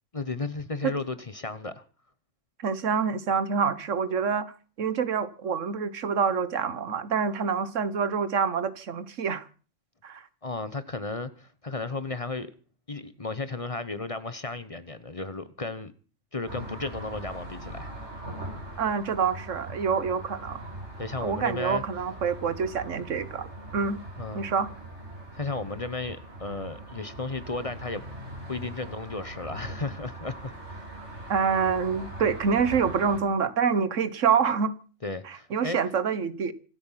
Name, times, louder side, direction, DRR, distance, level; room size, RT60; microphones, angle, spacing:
voice 1, 0.1-1.8 10.4-12.5 12.9-15.9 16.3-17.9 21.0-21.8 24.2-24.4 25.3-28.0 28.5-30.8 35.0-35.8, left 3 dB, 30° left, 1.0 m, -34 dB
voice 2, 2.6-4.5 4.8-9.5 10.0-10.3 18.8-20.6 21.2-24.0 24.3-24.7 31.3-34.7 35.2-36.5, right 6 dB, 80° right, 1.5 m, -26 dB
sound 1, 16.5-33.2, right 1 dB, 65° right, 5.0 m, -41 dB
26.0 x 8.6 x 5.8 m
omnidirectional pair, 1.3 m